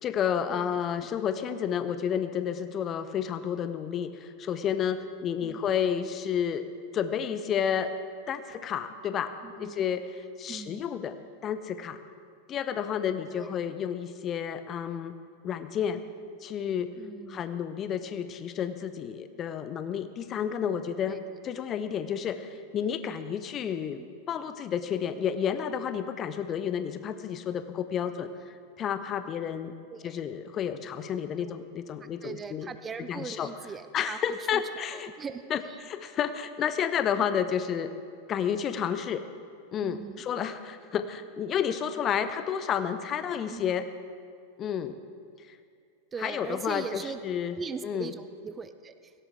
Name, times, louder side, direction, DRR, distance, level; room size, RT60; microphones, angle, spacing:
voice 1, 0.0-6.6 6.9-7.9 8.3-9.3 9.6-11.1 11.4-12.0 12.5-15.2 15.4-16.0 16.4-16.9 17.3-21.2 21.4-24.0 24.3-29.7 30.0-32.7 33.1-33.5 33.9-35.1 35.5-35.6 35.9-37.9 38.3-39.2 39.7-43.9 44.6-45.0 45.5-45.6 46.2-47.6 47.8-48.1, left 8 dB, 30° left, 11 dB, 0.8 m, -31 dB
voice 2, 9.4-9.8 10.5-10.8 13.3-13.5 17.0-17.4 21.0-21.2 23.9-24.1 29.9-30.2 31.4-31.5 32.2-34.6 35.2-35.4 35.7-35.8 37.1-37.2 39.8-40.2 43.5-43.7 46.1-47.2 47.6-49.1, right 5 dB, 20° right, 11 dB, 0.6 m, -40 dB
17.0 x 17.0 x 3.7 m, 2.3 s
figure-of-eight pair, 90°, 0 cm